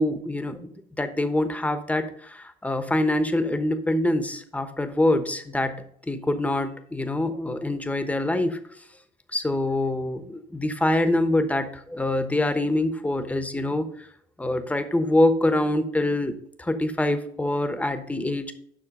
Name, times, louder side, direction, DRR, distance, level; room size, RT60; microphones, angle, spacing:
voice 1, 0.0-5.8 6.1-8.6 9.3-13.9 14.4-18.5, left 1 dB, 10° left, 8 dB, 1.0 m, -25 dB
7.6 x 5.9 x 5.4 m, 0.66 s
cardioid pair, 110°, 17 cm